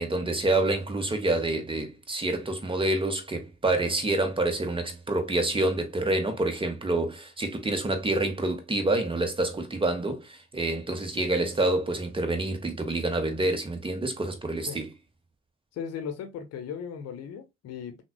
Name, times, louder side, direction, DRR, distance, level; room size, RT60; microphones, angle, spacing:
voice 1, 0.0-14.9, right 2 dB, 15° right, 1.1 m, -27 dB
voice 2, 15.7-18.0, left 7 dB, 45° left, 1.0 m, -37 dB
5.9 x 2.4 x 2.2 m
figure-of-eight pair, 50°, 34 cm